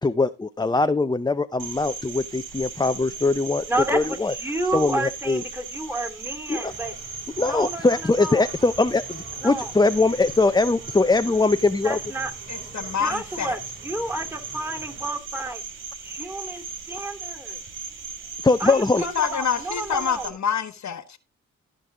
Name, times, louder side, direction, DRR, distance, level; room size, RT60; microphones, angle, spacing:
voice 1, 0.0-3.6 3.9-4.3 4.7-5.4 6.5-6.7 7.4-12.0 18.4-19.0, left 3 dB, 15° left, 0.6 m, -21 dB
Cricket, 1.6-20.3, right 4 dB, 85° right, 2.3 m, -37 dB
voice 2, 3.7-6.9 7.4-8.5 9.4-9.7 11.8-12.3 12.6-15.6 16.0-17.6 18.6-20.3, right 2 dB, 5° right, 2.4 m, -31 dB
sound 1, 6.7-15.2, right 2 dB, 30° right, 5.9 m, -47 dB
voice 3, 12.5-13.6 18.9-21.2, left 7 dB, 65° left, 1.1 m, -27 dB
15.0 x 5.4 x 3.7 m
supercardioid pair, 50°, 31 cm